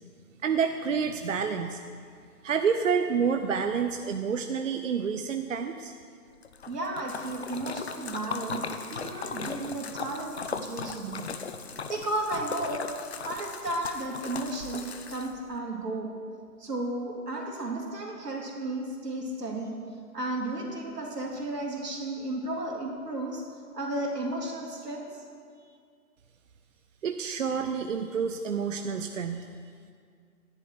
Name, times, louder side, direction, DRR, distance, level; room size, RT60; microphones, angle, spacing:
voice 1, 0.4-1.8 2.4-5.9 27.0-29.5, right 6 dB, 55° right, 7 dB, 0.6 m, -28 dB
Splash splatter, 6.4-15.5, left 5 dB, 45° left, 0.6 m, -38 dB
voice 2, 6.7-8.6 8.9-11.2 11.9-12.9 13.2-16.1 16.6-19.8 20.1-23.4 23.7-25.2, right 2 dB, 80° right, 0 dB, 2.9 m, -33 dB
11.0 x 10.5 x 4.6 m, 2.2 s
hypercardioid pair, 155°, 47 cm